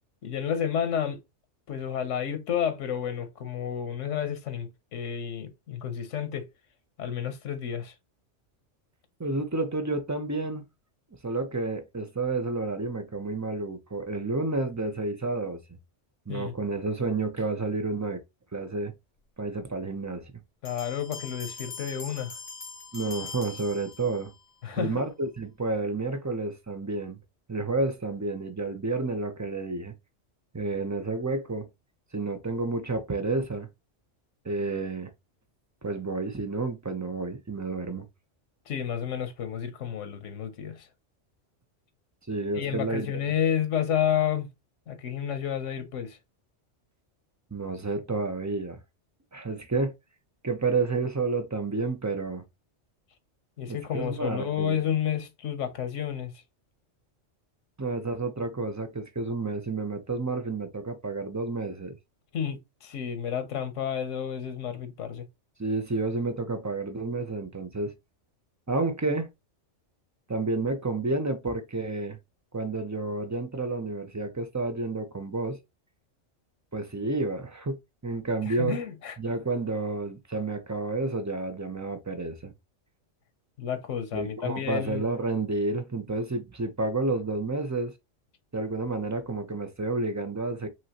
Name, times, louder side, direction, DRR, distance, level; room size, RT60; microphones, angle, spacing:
voice 1, 0.2-1.2 1.7-6.5 7.0-7.9 16.3-16.5 20.6-22.4 24.6-25.0 38.7-40.9 42.5-44.5 44.9-46.2 53.6-56.3 62.3-65.3 78.4-79.2 83.6-85.1, left 9 dB, 90° left, 1.2 m, -30 dB
voice 2, 9.2-10.6 11.2-15.6 16.3-18.2 18.5-18.9 19.4-20.3 22.9-24.3 24.8-27.2 27.5-29.9 30.5-31.7 32.1-33.7 34.4-35.1 35.8-38.0 42.3-43.1 47.5-48.8 49.3-49.9 50.4-52.4 53.7-54.8 57.8-62.0 65.6-67.9 68.7-69.3 70.3-72.2 72.5-75.6 76.7-77.8 78.0-78.8 79.2-82.5 84.1-87.9 88.5-90.7, right 3 dB, 20° right, 0.5 m, -30 dB
sound 1, 20.7-24.4, left 4 dB, 40° left, 1.4 m, -42 dB
5.3 x 2.9 x 2.9 m
omnidirectional pair, 1.2 m